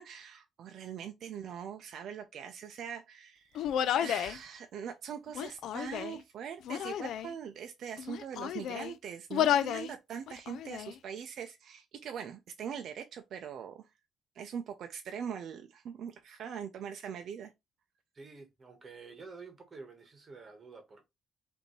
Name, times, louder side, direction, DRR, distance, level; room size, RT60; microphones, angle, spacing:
voice 1, 0.0-3.7 4.0-13.9 14.4-17.5, right 7 dB, 60° right, 0.5 m, -42 dB
Human voice, 3.6-4.4 5.3-6.2 6.6-7.3 8.0-8.9 9.3-9.9 10.3-10.9, left 10 dB, 80° left, 0.3 m, -32 dB
voice 2, 18.1-21.1, right 4 dB, 30° right, 1.2 m, -50 dB
5.2 x 2.7 x 3.1 m
cardioid pair, 160°, 0 cm